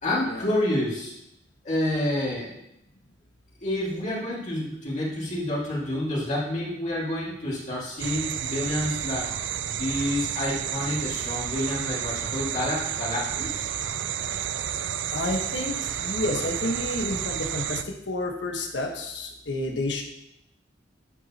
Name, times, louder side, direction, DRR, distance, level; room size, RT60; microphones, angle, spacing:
voice 1, 0.0-1.1 1.6-2.5 3.6-9.3 9.7-13.7, left 1 dB, 40° left, -5 dB, 2.4 m, -28 dB
sound 1, 8.0-17.8, right 9 dB, 70° right, 0.4 m, -31 dB
voice 2, 15.1-20.0, left 1 dB, 70° left, 2 dB, 1.4 m, -30 dB
11.5 x 7.3 x 3.0 m, 0.82 s
head